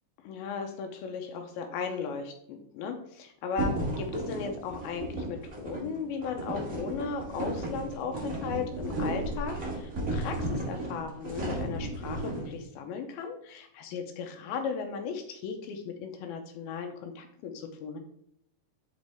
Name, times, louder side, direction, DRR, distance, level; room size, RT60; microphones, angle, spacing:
voice 1, 0.2-18.0, left 5 dB, 85° left, 4 dB, 2.2 m, -36 dB
sound 1, 3.6-12.5, right 1 dB, 35° right, 1.4 m, -34 dB
7.4 x 5.2 x 3.5 m, 0.72 s
omnidirectional pair, 5.2 m